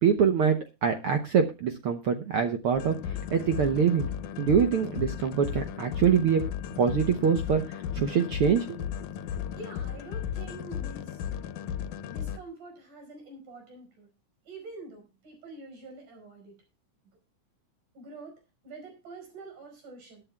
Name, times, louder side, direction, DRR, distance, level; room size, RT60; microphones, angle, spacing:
voice 1, 0.0-3.0 3.3-4.1 4.4-6.4 6.8-8.8, right 7 dB, 65° right, 6 dB, 1.4 m, -24 dB
sound 1, 2.8-12.4, left 9 dB, 80° left, 2.3 m, -35 dB
voice 2, 9.6-11.2 12.0-14.1 14.5-16.5 17.9-20.2, right 2 dB, 85° right, 4 dB, 6.5 m, -46 dB
21.5 x 9.6 x 2.3 m, 0.27 s
omnidirectional pair, 3.5 m